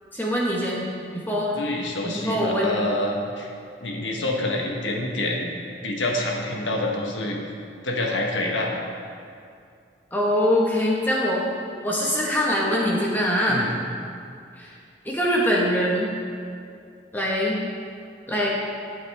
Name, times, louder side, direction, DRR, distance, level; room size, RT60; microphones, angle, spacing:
voice 1, 0.1-1.6 2.0-2.7 10.1-11.4 11.8-13.6 14.6-14.7 15.0-16.1 17.1-17.6 18.3-18.5, equal, 10° left, -4 dB, 1.6 m, -23 dB
voice 2, 1.5-3.5 3.8-5.5 5.8-7.4 7.8-8.7 13.5-13.7, left 1 dB, 90° left, 0 dB, 1.5 m, -27 dB
12.5 x 8.2 x 3.6 m, 2.4 s
head